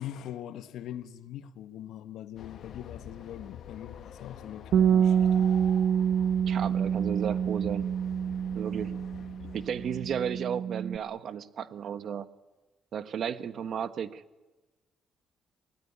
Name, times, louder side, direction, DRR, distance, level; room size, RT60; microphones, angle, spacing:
voice 1, 0.0-5.5, left 11 dB, 80° left, 1.3 m, -42 dB
Train, 2.4-10.5, left 8 dB, 65° left, 1.6 m, -46 dB
Bass guitar, 4.7-11.0, right 8 dB, 80° right, 0.9 m, -27 dB
voice 2, 6.5-8.0 8.5-8.9 9.5-12.3 12.9-14.2, right 8 dB, 60° right, 1.3 m, -34 dB
24.5 x 18.0 x 9.9 m
cardioid pair, 90°, 0 cm